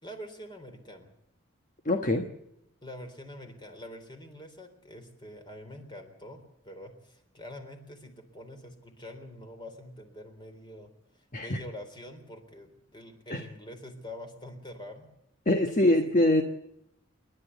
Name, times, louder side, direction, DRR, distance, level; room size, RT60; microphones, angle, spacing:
voice 1, 0.0-1.1 2.8-15.1 15.7-16.3, left 1 dB, 25° left, 6 dB, 3.7 m, -45 dB
voice 2, 1.8-2.3 11.3-11.6 13.3-13.4 15.5-16.4, left 1 dB, 40° left, 6 dB, 1.2 m, -24 dB
28.5 x 12.0 x 8.2 m, 0.82 s
head